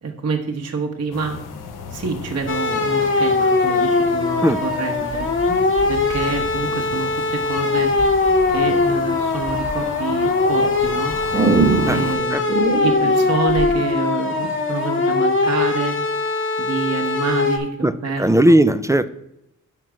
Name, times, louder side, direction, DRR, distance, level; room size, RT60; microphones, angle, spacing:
voice 1, 0.0-1.4 1.9-5.3 5.9-7.9 8.5-11.1 11.8-12.4 12.8-16.0 16.6-18.6, right 4 dB, 50° right, 1 dB, 1.1 m, -27 dB
sound 1, 1.1-12.2, left 5 dB, 80° left, 0.8 m, -36 dB
sound 2, 2.5-17.6, left 3 dB, 40° left, 1.1 m, -21 dB
sound 3, 5.1-7.0 8.0-8.5 9.0-9.8 10.4-13.8, right 3 dB, 25° right, 1.1 m, -24 dB
voice 2, 17.8-19.1, right 1 dB, 10° right, 13 dB, 0.3 m, -17 dB
5.8 x 4.6 x 6.2 m, 0.82 s
cardioid pair, 85°, 31 cm